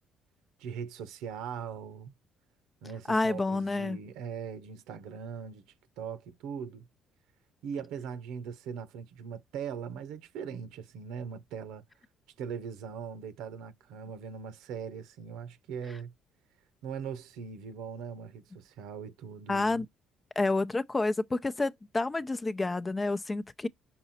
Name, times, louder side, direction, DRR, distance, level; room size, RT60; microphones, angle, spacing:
voice 1, 0.6-2.1 2.8-6.8 7.6-11.8 12.4-16.1 16.8-19.8, right 7 dB, 85° right, 1.0 m, -40 dB
voice 2, 3.1-4.0 19.5-19.9 20.4-23.7, left 2 dB, 20° left, 0.6 m, -29 dB
6.1 x 4.0 x 4.1 m
cardioid pair, 85°, 0 cm